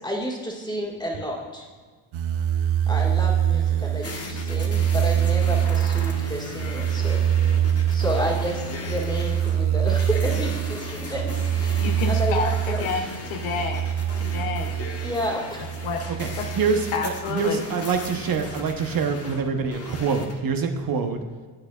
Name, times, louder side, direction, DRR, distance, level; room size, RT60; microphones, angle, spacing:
voice 1, 0.0-1.6 2.9-7.2 7.9-11.3 11.6-12.9 15.0-15.7, equal, 10° left, -3 dB, 1.7 m, -30 dB
sound 1, 2.1-17.4 17.9-19.0, right 10 dB, 85° right, 0.6 m, -25 dB
sound 2, 4.0-20.3, left 3 dB, 30° left, 1.2 m, -38 dB
voice 2, 11.8-13.9 14.1-14.8 15.8-16.0 16.4-16.5 16.9-17.6, left 5 dB, 85° left, 3 dB, 0.7 m, -29 dB
voice 3, 16.5-21.2, right 5 dB, 45° right, 7 dB, 0.9 m, -25 dB
8.1 x 6.7 x 2.3 m, 1.5 s
supercardioid pair, 65°, 48 cm